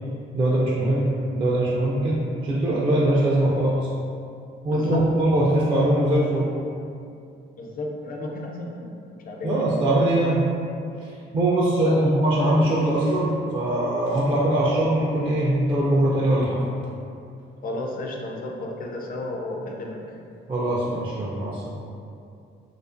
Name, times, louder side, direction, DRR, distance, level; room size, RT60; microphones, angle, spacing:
voice 1, 0.3-3.9 4.6-6.5 9.4-10.5 11.3-16.6 20.5-21.7, right 1 dB, 25° right, -5 dB, 0.3 m, -22 dB
voice 2, 4.7-5.0 7.6-9.5 11.8-12.1 17.6-20.0, left 2 dB, 45° left, 0 dB, 0.4 m, -33 dB
2.4 x 2.4 x 2.4 m, 2.5 s
cardioid pair, 90°, 20 cm